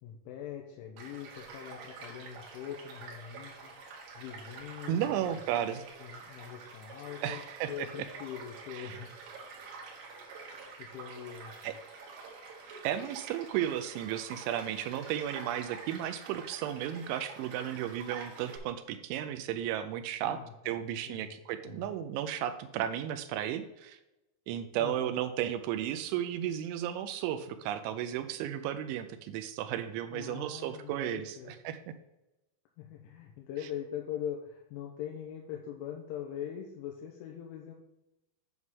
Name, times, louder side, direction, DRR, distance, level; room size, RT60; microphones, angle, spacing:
voice 1, 0.0-3.7 4.1-9.1 10.8-11.7 20.2-21.4 21.6-21.9 24.8-25.1 30.1-31.6 32.8-37.7, left 9 dB, 80° left, 0 dB, 3.2 m, -42 dB
Child speech kid speaking / Stream / Car passing by, 1.0-18.6, right 4 dB, 65° right, 3.5 m, -47 dB
voice 2, 4.9-5.8 7.2-7.7 8.7-8.9 11.6-11.7 12.8-20.4 20.7-24.0 24.5-31.4 31.7-31.8, right 11 dB, 85° right, 10 dB, 2.9 m, -34 dB
9.6 x 3.6 x 6.2 m, 0.93 s
omnidirectional pair, 5.7 m